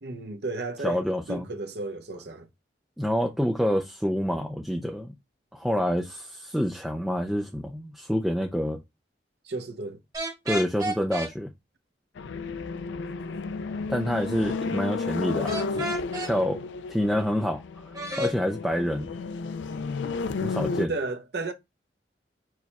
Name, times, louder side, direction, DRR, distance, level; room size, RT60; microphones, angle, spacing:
voice 1, 0.0-1.0 1.3-2.5 9.4-10.0 20.9-21.5, right 3 dB, 60° right, 0.7 m, -33 dB
voice 2, 0.8-1.4 3.0-5.1 5.5-8.8 10.5-11.5 13.9-15.8 16.2-17.9 18.2-19.1 20.4-20.9, equal, ahead, 0.4 m, -27 dB
sound 1, 10.1-11.3 15.5-16.3 17.9-18.3, right 1 dB, 20° right, 1.0 m, -31 dB
sound 2, 12.2-20.9, left 4 dB, 85° left, 0.4 m, -32 dB
4.7 x 2.3 x 4.0 m
head